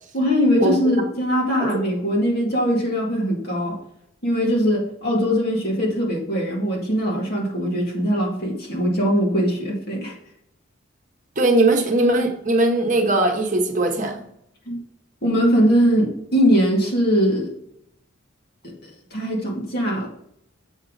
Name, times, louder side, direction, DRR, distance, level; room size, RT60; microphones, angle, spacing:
voice 1, 0.1-3.8 4.2-10.1 14.7-14.8 15.2-17.5 18.6-20.1, equal, 50° left, -2 dB, 2.2 m, -21 dB
voice 2, 11.4-14.2, right 2 dB, 40° right, 2 dB, 1.1 m, -19 dB
7.3 x 5.6 x 3.9 m, 0.73 s
head